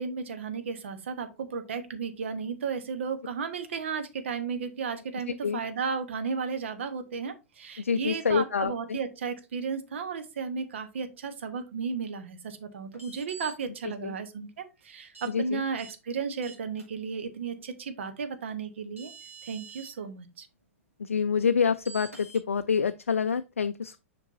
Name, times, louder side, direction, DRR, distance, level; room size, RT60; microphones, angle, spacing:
voice 1, 0.0-19.1 19.4-20.5, right 5 dB, 60° right, 1.0 m, -34 dB
voice 2, 7.8-9.0 14.0-14.1 15.3-15.6 21.0-24.0, left 6 dB, 75° left, 0.3 m, -27 dB
sound 1, 12.9-13.5 15.1-15.3 15.8-15.9 16.4-16.8 18.5-18.6 19.0-19.9 21.9-22.4, right 4 dB, 90° right, 2.5 m, -46 dB
7.3 x 5.2 x 2.6 m
figure-of-eight pair, 100°, 7 cm